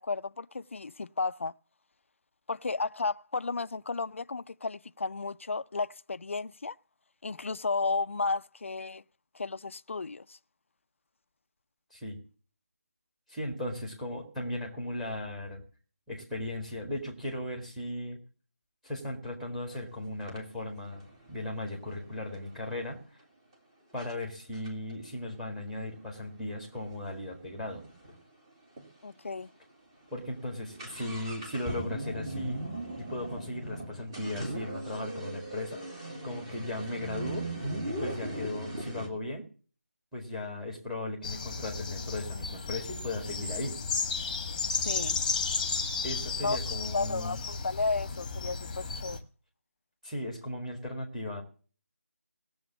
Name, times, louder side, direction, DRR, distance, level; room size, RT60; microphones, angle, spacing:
voice 1, 0.0-1.5 2.5-6.8 7.2-9.0 9.3-10.4 29.0-29.5 44.7-45.2 46.4-46.6 46.9-49.2, left 4 dB, 55° left, 0.5 m, -33 dB
voice 2, 13.3-15.6 16.1-18.2 18.8-23.2 23.9-27.9 30.1-32.6 33.0-35.8 36.2-37.5 37.8-39.4 40.1-43.8 46.0-47.4 50.0-51.4, left 1 dB, ahead, 1.8 m, -37 dB
sound 1, 19.7-19.8 20.3-22.9 23.5-23.6 24.0-24.1 24.5-28.2 28.5-28.6 28.8-28.9 29.5-29.6 29.9-39.1, right 1 dB, 20° right, 2.3 m, -39 dB
sound 2, 41.2-49.2, left 4 dB, 20° left, 1.3 m, -33 dB
17.5 x 7.1 x 7.1 m
figure-of-eight pair, 165°, 8 cm